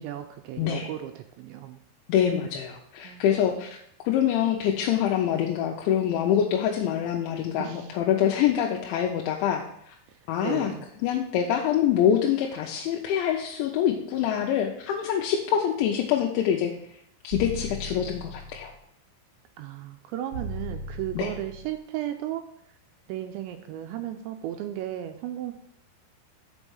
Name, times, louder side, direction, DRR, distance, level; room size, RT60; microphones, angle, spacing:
voice 1, 0.0-1.8 3.0-3.5 7.6-8.0 10.1-10.9 19.6-22.4 23.1-25.5, right 12 dB, 85° right, 7 dB, 2.6 m, -35 dB
voice 2, 0.6-0.9 2.1-10.0 10.3-10.7 11.0-16.7 17.2-18.7 21.2-21.3, left 9 dB, 80° left, 0 dB, 2.9 m, -25 dB
sound 1, 17.3-18.7 20.3-21.7, equal, 65° right, 3.3 m, -37 dB
6.6 x 5.3 x 6.3 m, 0.71 s
omnidirectional pair, 5.6 m